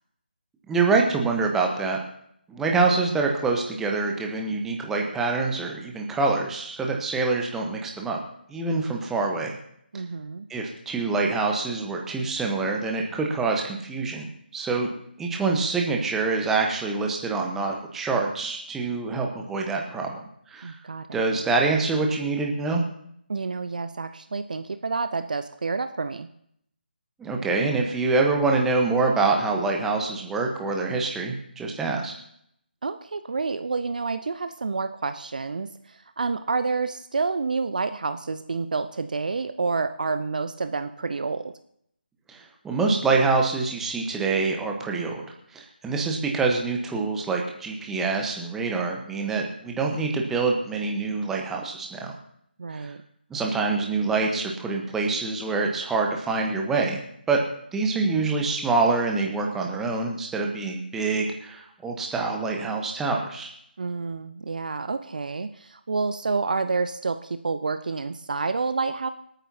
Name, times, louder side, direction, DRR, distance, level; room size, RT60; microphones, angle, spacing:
voice 1, 0.7-2.0 2.5-8.2 8.5-9.5 10.5-14.3 14.5-14.9 15.2-20.7 21.1-22.8 27.2-32.1 42.3-45.2 45.5-52.1 52.7-52.9 53.3-57.0 57.3-57.4 57.7-63.5, right 3 dB, 5° right, 1 dB, 1.2 m, -25 dB
voice 2, 9.9-10.5 20.6-21.2 23.3-26.3 32.8-41.5 52.6-53.0 63.8-69.1, right 4 dB, 50° right, 10 dB, 0.6 m, -29 dB
26.0 x 9.1 x 2.9 m, 0.71 s
figure-of-eight pair, 150°, 6 cm